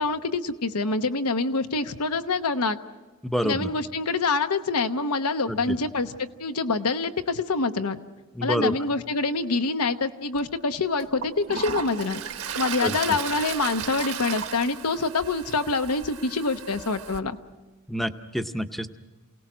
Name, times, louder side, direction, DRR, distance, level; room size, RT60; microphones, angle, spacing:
voice 1, 0.0-2.8 3.4-8.0 8.4-12.2 12.6-17.4, left 3 dB, 90° left, 9 dB, 1.0 m, -26 dB
voice 2, 3.2-3.7 5.5-5.8 8.3-8.7 12.8-13.0 17.9-18.9, equal, ahead, 8 dB, 0.7 m, -27 dB
Toilet flush, 10.3-10.4 11.0-17.2, right 7 dB, 80° right, 1.3 m, -35 dB
28.0 x 18.0 x 6.2 m, 1.2 s
head